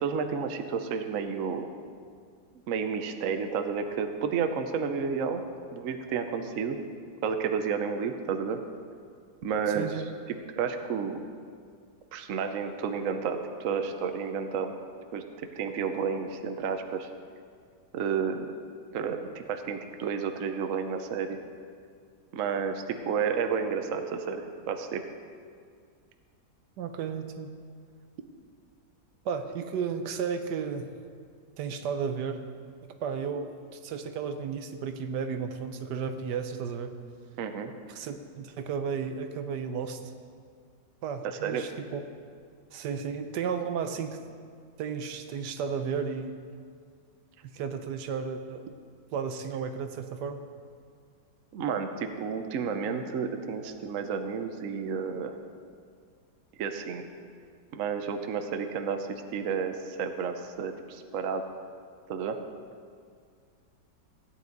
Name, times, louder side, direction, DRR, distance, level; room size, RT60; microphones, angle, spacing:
voice 1, 0.0-1.7 2.7-5.4 5.7-6.8 7.2-8.6 9.4-9.9 10.5-11.2 12.1-14.8 15.1-17.1 17.9-18.5 18.9-21.4 22.3-25.0 37.4-37.7 41.2-41.6 51.5-55.4 56.6-57.1 57.7-61.5 62.1-62.4, right 6 dB, 60° right, 6 dB, 1.0 m, -31 dB
voice 2, 9.7-10.1 26.8-27.5 29.2-30.9 31.6-32.4 33.0-36.9 37.9-40.0 41.0-42.0 42.7-44.2 44.8-46.4 47.5-48.7 49.1-50.4, right 6 dB, 75° right, 8 dB, 1.3 m, -33 dB
16.0 x 9.5 x 3.9 m, 2.1 s
omnidirectional pair, 1.8 m